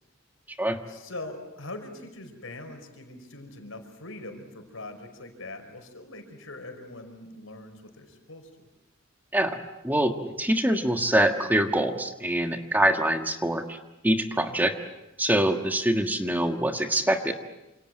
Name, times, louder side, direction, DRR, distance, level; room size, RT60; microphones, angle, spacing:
voice 1, 0.9-8.7, left 2 dB, 75° left, 6 dB, 5.1 m, -42 dB
voice 2, 9.3-13.8 14.0-14.7 15.2-17.3, right 1 dB, 10° right, 5 dB, 1.5 m, -24 dB
28.0 x 27.0 x 7.6 m, 0.94 s
head